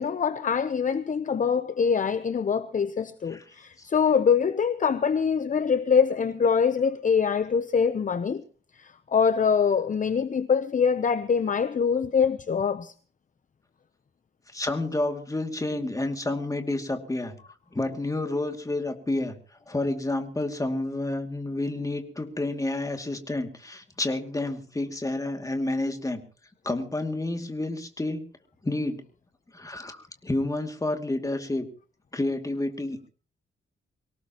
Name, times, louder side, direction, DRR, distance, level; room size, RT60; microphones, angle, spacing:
voice 1, 0.0-8.4 8.8-12.9, left 6 dB, 40° left, 0.8 m, -24 dB
voice 2, 14.5-17.4 17.7-19.4 19.7-26.2 26.6-28.2 28.6-29.0 29.5-31.7 32.1-33.1, left 2 dB, 15° left, 2.5 m, -29 dB
24.5 x 18.0 x 3.0 m
wide cardioid pair, 140°, 21 cm